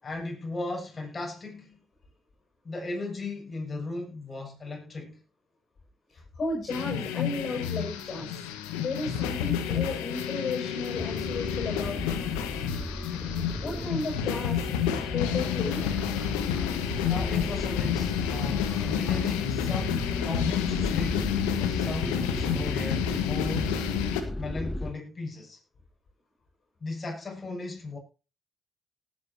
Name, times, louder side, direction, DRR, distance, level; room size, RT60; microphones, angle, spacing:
voice 1, 0.0-1.8 2.6-5.2 17.0-23.9 24.3-25.6 26.8-28.0, left 3 dB, 35° left, 7.6 m, -36 dB
voice 2, 6.1-8.3 8.8-12.2 13.6-14.6 15.1-15.9, left 3 dB, 50° left, 7.4 m, -34 dB
sound 1, 6.7-24.2, left 9 dB, 85° left, 1.6 m, -30 dB
sound 2, 11.0-24.9, left 2 dB, 20° left, 2.4 m, -35 dB
19.0 x 9.3 x 3.0 m
hypercardioid pair, 55°, 0 cm